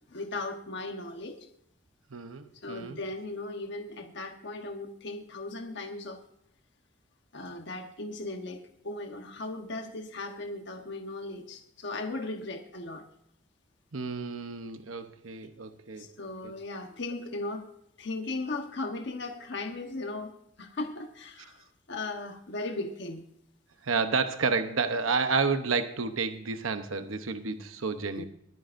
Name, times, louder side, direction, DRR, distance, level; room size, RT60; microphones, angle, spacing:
voice 1, 0.1-1.5 2.6-6.2 7.3-13.1 16.0-17.7 18.0-20.3 20.6-23.2 28.2-28.3, left 2 dB, 60° left, 5 dB, 1.2 m, -37 dB
voice 2, 2.1-3.0 13.9-16.1 16.4-16.5 23.8-28.3, right 4 dB, 90° right, 9 dB, 0.9 m, -30 dB
22.5 x 9.5 x 2.6 m, 0.70 s
head